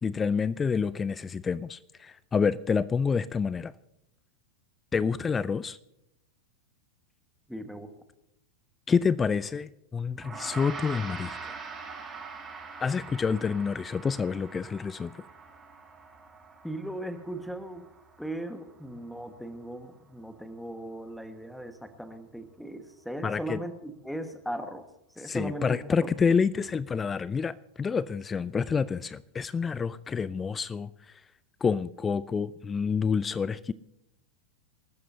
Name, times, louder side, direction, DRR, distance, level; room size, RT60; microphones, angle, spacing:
voice 1, 0.0-3.7 4.9-5.8 8.9-11.5 12.8-15.1 23.2-23.6 25.2-31.2 31.6-33.7, left 5 dB, 15° left, 19 dB, 0.5 m, -28 dB
voice 2, 7.5-7.9 16.6-17.9 18.2-26.4, right 1 dB, ahead, 8 dB, 1.6 m, -38 dB
Gong, 10.2-19.7, right 4 dB, 20° right, 7.3 m, -44 dB
27.0 x 13.5 x 2.8 m, 0.83 s
figure-of-eight pair, 90°, 0 cm